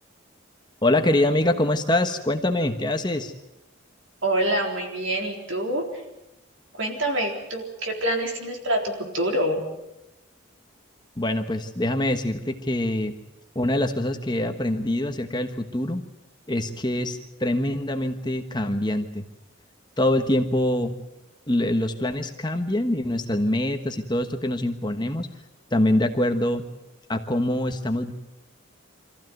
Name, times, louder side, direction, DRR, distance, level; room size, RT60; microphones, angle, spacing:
voice 1, 0.8-3.3 11.2-13.1 13.5-16.0 16.5-19.2 20.0-20.9 21.5-25.3 25.7-26.6 27.1-28.1, left 1 dB, 20° left, 6 dB, 1.3 m, -24 dB
voice 2, 4.2-6.0 6.7-9.6, right 1 dB, 70° right, 3 dB, 4.0 m, -26 dB
25.5 x 15.0 x 9.4 m, 0.90 s
head